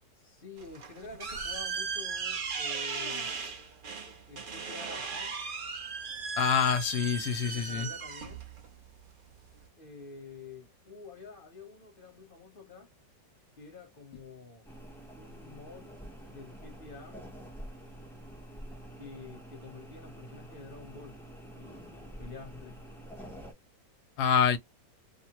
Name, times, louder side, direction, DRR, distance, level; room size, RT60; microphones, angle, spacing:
voice 1, 0.1-3.3 4.3-5.4 7.4-8.4 9.7-12.9 13.5-14.7 15.1-15.9 16.3-17.2 19.0-21.2 21.6-22.9, left 4 dB, 35° left, 1.0 m, -48 dB
sound 1, 0.6-9.7, right 5 dB, 85° right, 0.4 m, -37 dB
voice 2, 6.4-7.9 24.2-24.6, left 7 dB, 75° left, 1.1 m, -26 dB
sound 2, 14.6-23.5, right 1 dB, 5° left, 0.3 m, -47 dB
2.9 x 2.1 x 2.9 m
omnidirectional pair, 1.9 m